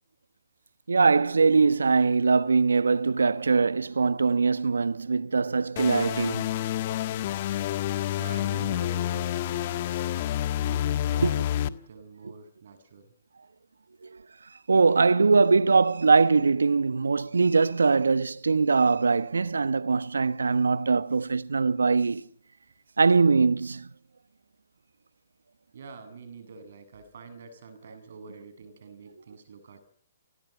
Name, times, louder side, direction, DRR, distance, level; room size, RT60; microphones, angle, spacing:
voice 1, 0.9-6.5 11.2-11.3 14.1-14.2 14.7-22.2 23.0-23.9, right 4 dB, 80° right, 1.1 m, -22 dB
sound 1, 5.8-11.7, left 12 dB, 45° left, 1.5 m, -28 dB
voice 2, 8.2-11.3 11.6-13.1 25.7-29.8, right 4 dB, 60° right, 7.7 m, -46 dB
29.0 x 19.5 x 8.1 m
figure-of-eight pair, 130°, 0 cm